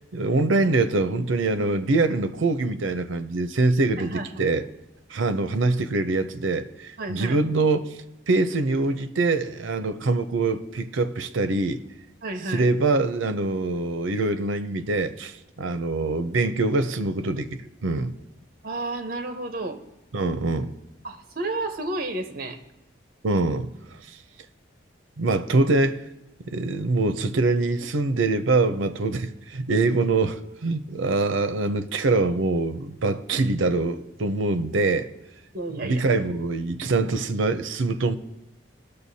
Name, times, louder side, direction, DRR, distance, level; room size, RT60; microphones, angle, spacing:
voice 1, 0.1-4.7 5.1-7.9 8.3-11.8 12.5-17.5 17.8-18.1 20.1-20.7 23.2-23.7 25.2-26.0 26.5-35.1 35.8-38.2, right 3 dB, 85° right, 0.6 m, -24 dB
voice 2, 4.0-4.4 7.0-7.4 12.2-12.7 18.6-19.8 21.0-22.6 35.5-36.0, right 2 dB, 50° right, 0.9 m, -31 dB
19.0 x 6.7 x 2.8 m
head